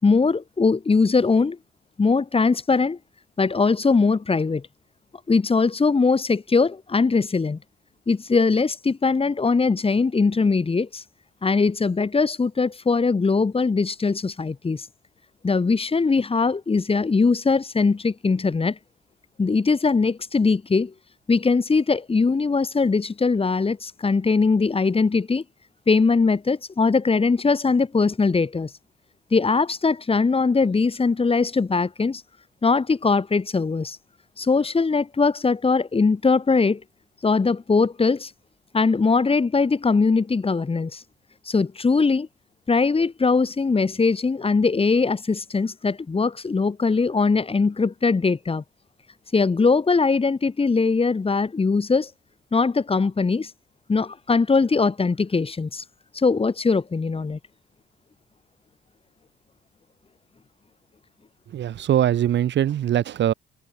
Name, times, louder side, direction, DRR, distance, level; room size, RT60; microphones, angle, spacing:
voice 1, 0.0-1.6 2.0-3.0 3.4-4.6 5.3-7.6 8.1-11.0 11.4-14.9 15.4-18.8 19.4-20.9 21.3-25.4 25.9-28.7 29.3-32.2 32.6-34.0 34.4-36.8 37.2-38.3 38.7-41.0 41.5-42.3 42.7-48.6 49.3-52.1 52.5-53.5 53.9-55.8 56.1-57.4, left 4 dB, 30° left, 3.7 m, -21 dB
voice 2, 61.5-63.3, right 11 dB, 65° right, 1.3 m, -22 dB
cardioid pair, 90°, 20 cm